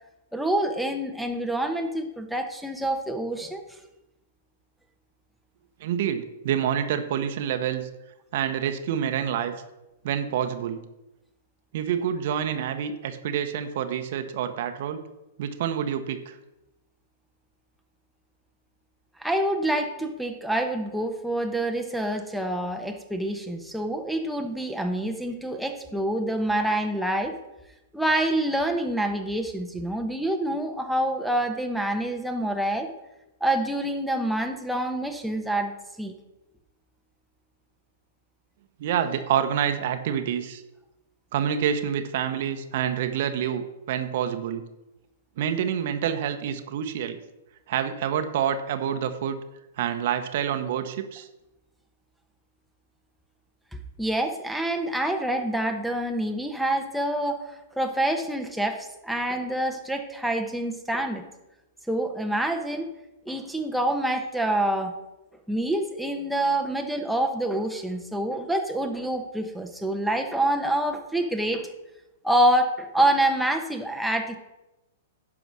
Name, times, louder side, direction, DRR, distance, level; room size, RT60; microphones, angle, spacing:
voice 1, 0.3-3.6 19.2-27.4 27.9-32.9 33.4-35.7 36.0-36.1 54.0-57.4 57.8-61.2 61.9-62.9 63.3-65.0 65.5-71.7 72.2-74.4, right 1 dB, ahead, 3 dB, 1.0 m, -26 dB
voice 2, 5.8-7.9 8.3-9.5 10.0-10.8 11.7-15.0 15.4-16.3 38.8-40.6 41.3-44.6 45.4-47.2 47.7-49.4 49.8-51.3, right 9 dB, 60° right, 8 dB, 1.0 m, -27 dB
11.0 x 4.9 x 6.2 m, 0.96 s
hypercardioid pair, 120°, 0 cm